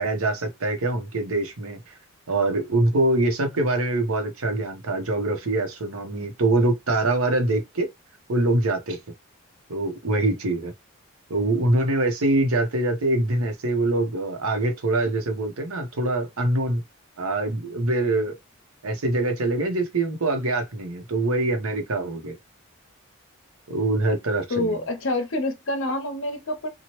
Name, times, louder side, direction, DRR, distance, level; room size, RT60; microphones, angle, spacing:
voice 1, 0.0-1.8 2.3-7.9 8.3-9.0 9.7-10.7 11.3-16.8 17.2-18.4 18.8-22.4 23.7-24.8, right 2 dB, 80° right, 0.9 m, -24 dB
voice 2, 24.5-26.7, left 1 dB, 65° left, 0.7 m, -27 dB
2.9 x 2.3 x 3.0 m
head